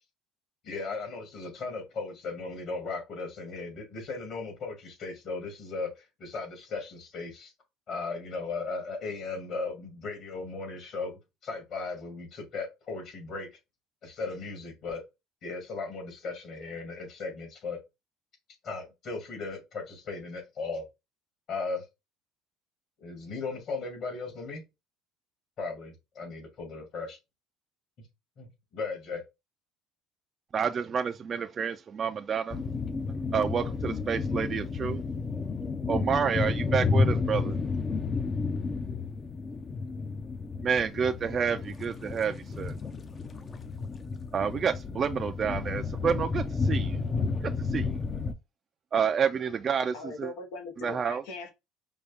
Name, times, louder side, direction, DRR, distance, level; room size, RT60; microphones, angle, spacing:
voice 1, 0.6-7.5 7.9-13.5 14.0-15.0 15.4-17.8 18.6-20.8 21.5-21.8 23.0-24.6 25.6-27.2 28.4-29.2, left 4 dB, 50° left, 2.4 m, -37 dB
voice 2, 30.5-32.6 33.3-35.0 35.9-37.6 40.6-42.7 44.3-47.0 47.4-48.0 48.9-50.3 50.8-51.2, right 7 dB, 35° right, 0.3 m, -29 dB
sound 1, 32.5-48.3, left 4 dB, 25° left, 0.5 m, -31 dB
voice 3, 49.9-51.5, left 3 dB, 85° left, 1.0 m, -40 dB
5.1 x 2.3 x 3.5 m
cardioid pair, 120°, 0 cm